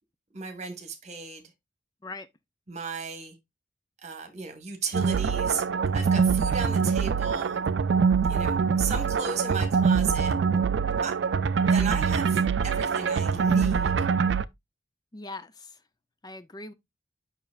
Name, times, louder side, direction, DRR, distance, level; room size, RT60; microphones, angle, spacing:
voice 1, 0.3-1.5 2.7-3.3 4.0-5.6 5.9-7.6 8.3-10.3 11.0-11.2 11.6-14.1, right 5 dB, 40° right, 1.4 m, -35 dB
sound 1, 4.9-14.4, right 6 dB, 80° right, 0.4 m, -24 dB
voice 2, 15.1-15.8 16.2-16.7, left 2 dB, 25° left, 0.5 m, -40 dB
6.9 x 5.8 x 2.4 m
head